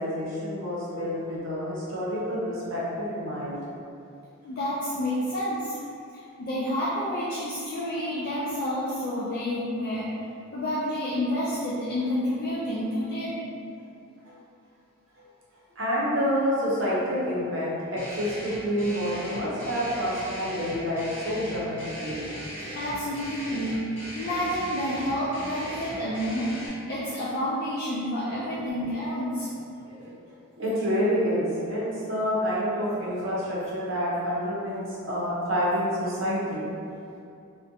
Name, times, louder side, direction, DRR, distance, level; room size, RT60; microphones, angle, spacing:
voice 1, 0.0-3.6 14.2-14.3 15.8-22.3 28.3-28.4 29.8-30.1 30.6-31.8 32.1-36.7, equal, 55° right, -7 dB, 0.6 m, -28 dB
voice 2, 4.4-5.8 6.4-10.1 10.5-13.4 22.7-29.5, equal, 45° left, -9 dB, 0.3 m, -29 dB
sound 1, 18.0-26.7, equal, 10° left, 0.6 m, -38 dB
2.5 x 2.1 x 2.6 m, 2.5 s
head